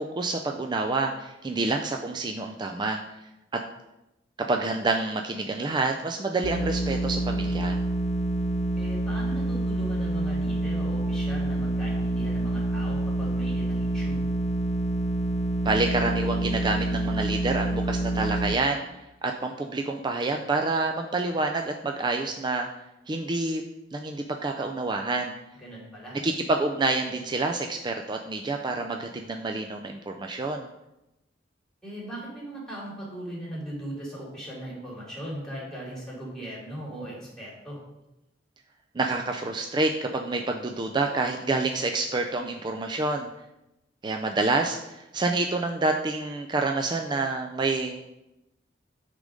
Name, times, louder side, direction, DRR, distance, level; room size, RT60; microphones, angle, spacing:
voice 1, 0.0-3.0 4.5-7.8 15.6-18.8 19.2-22.7 23.1-23.6 23.9-25.3 26.2-30.7 39.0-43.3 44.0-48.0, right 3 dB, 25° right, 3 dB, 0.4 m, -28 dB
sound 1, 6.4-18.5, right 1 dB, 40° left, 0.7 m, -27 dB
voice 2, 8.8-14.2 25.5-26.2 31.8-37.8, right 1 dB, 5° left, -5 dB, 2.9 m, -38 dB
9.5 x 3.8 x 5.1 m, 0.93 s
head